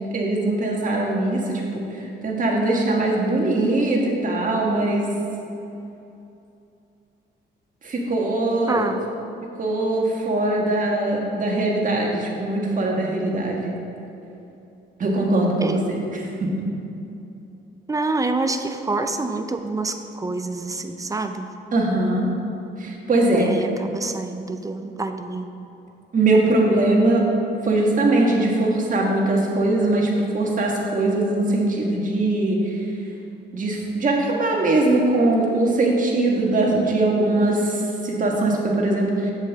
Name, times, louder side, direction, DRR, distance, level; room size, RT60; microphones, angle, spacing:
voice 1, 0.1-1.9 2.2-5.0 7.8-8.9 9.6-13.7 15.0-16.0 16.4-16.5 21.7-22.3 22.8-23.5 26.1-27.2 27.6-32.6 33.5-39.3, right 2 dB, 40° right, -1 dB, 1.6 m, -21 dB
voice 2, 8.7-9.1 15.6-15.8 17.9-21.5 23.3-25.5, right 3 dB, 15° right, 8 dB, 0.5 m, -27 dB
8.1 x 7.5 x 3.5 m, 2.8 s
cardioid pair, 90°, 20 cm